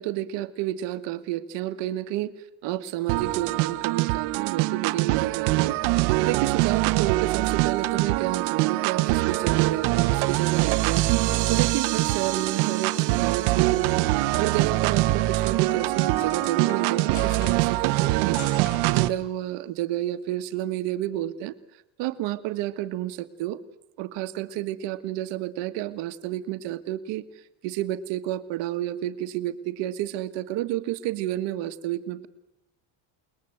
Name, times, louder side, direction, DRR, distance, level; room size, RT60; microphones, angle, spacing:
voice 1, 0.0-2.3 2.6-5.8 6.2-11.0 11.5-14.0 14.4-18.4 18.9-21.5 22.0-23.6 24.0-27.2 27.6-32.3, right 14 dB, 65° right, 10 dB, 1.6 m, -30 dB
sound 1, 3.1-19.1, right 19 dB, 85° right, 1.3 m, -24 dB
sound 2, 9.9-16.0, right 14 dB, 40° right, 1.2 m, -36 dB
sound 3, 13.1-19.0, left 5 dB, 80° left, 5.5 m, -44 dB
29.0 x 21.0 x 7.9 m, 0.85 s
cardioid pair, 160°, 46 cm